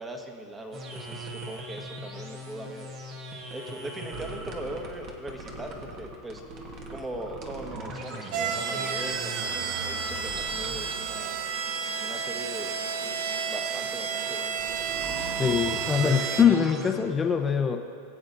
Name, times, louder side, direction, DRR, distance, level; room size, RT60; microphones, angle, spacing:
voice 1, 0.0-2.9 3.5-6.4 6.9-11.4 12.0-12.7 13.0-14.6, right 1 dB, 15° right, 3 dB, 1.3 m, -40 dB
sound 1, 0.7-11.5 14.5-16.9, right 1 dB, 45° right, 1.4 m, -39 dB
sound 2, 8.3-16.4, right 7 dB, 60° right, 0.8 m, -31 dB
voice 2, 15.4-17.8, left 7 dB, 20° left, 4 dB, 0.8 m, -23 dB
22.5 x 7.9 x 2.7 m, 2.3 s
supercardioid pair, 120°, 0 cm